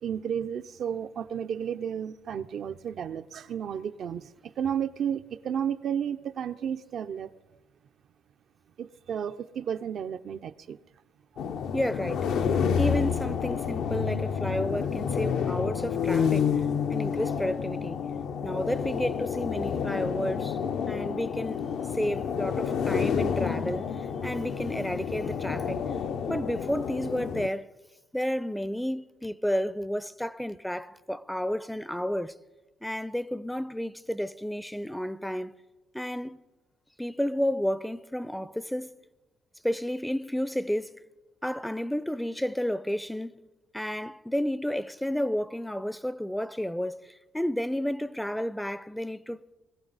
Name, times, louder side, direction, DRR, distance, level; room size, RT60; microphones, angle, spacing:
voice 1, 0.0-7.3 8.8-10.8, right 8 dB, 65° right, 0.5 m, -32 dB
sound 1, 11.4-27.5, left 7 dB, 75° left, 0.6 m, -29 dB
voice 2, 11.7-18.0 18.4-20.6 20.9-21.6 21.9-25.9 26.3-27.7 28.1-32.4 32.8-35.6 35.9-36.4 37.0-38.9 39.6-41.0 41.4-43.3 43.7-49.4, equal, 5° left, 0.4 m, -31 dB
21.0 x 14.5 x 4.0 m
cardioid pair, 90°, 0 cm